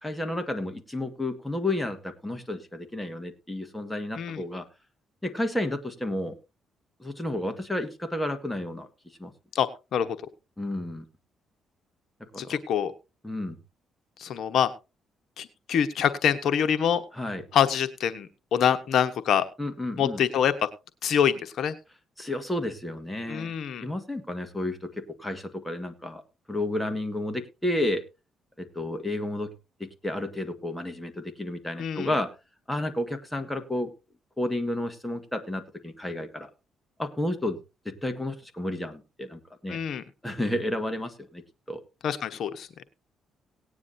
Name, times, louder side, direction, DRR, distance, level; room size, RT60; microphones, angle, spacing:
voice 1, 0.0-4.6 5.2-6.3 7.0-8.9 9.2-9.3 10.6-11.0 12.3-12.6 13.2-13.5 17.1-17.4 19.6-20.2 22.2-23.5 23.8-24.9 25.2-26.2 26.5-28.0 28.6-29.5 29.8-32.3 32.7-33.9 34.4-36.5 37.0-37.6 37.8-39.8 40.2-41.4 41.7-41.8, left 1 dB, 5° left, 6 dB, 1.7 m, -31 dB
voice 2, 9.5-10.2 12.4-12.9 14.2-14.7 15.4-17.0 17.5-19.4 20.0-20.5 21.0-21.7 23.3-23.8 31.8-32.1 39.7-40.0 42.0-42.7, left 8 dB, 65° left, 9 dB, 1.1 m, -25 dB
18.0 x 9.6 x 2.7 m, 0.27 s
cardioid pair, 90°, 0 cm